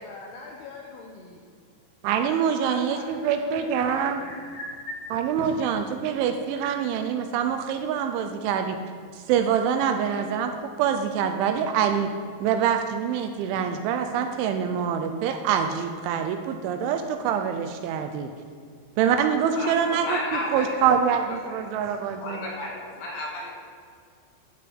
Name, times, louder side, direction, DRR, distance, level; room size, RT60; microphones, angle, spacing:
voice 1, 0.0-1.4 2.2-4.6, left 4 dB, 75° left, -1 dB, 2.5 m, -42 dB
voice 2, 2.0-4.2 5.1-8.8 9.1-12.1 12.4-18.3 19.0-20.2 20.5-22.4, right 8 dB, 80° right, 6 dB, 2.9 m, -25 dB
voice 3, 4.2-4.9 19.5-20.8 21.2-21.8 22.2-23.5, left 1 dB, 55° left, -3 dB, 3.2 m, -34 dB
12.5 x 5.2 x 7.7 m, 2.1 s
omnidirectional pair, 5.7 m